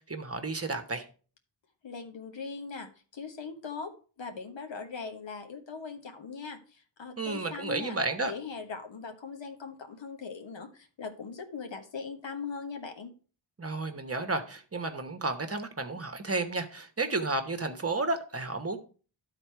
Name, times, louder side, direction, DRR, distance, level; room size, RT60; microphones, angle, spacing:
voice 1, 0.1-1.0 7.2-8.3 13.6-18.8, right 3 dB, 30° right, 1.0 m, -32 dB
voice 2, 1.8-8.0 8.2-13.1, left 5 dB, 75° left, 1.3 m, -40 dB
12.0 x 4.1 x 4.6 m
wide cardioid pair, 80°, 44 cm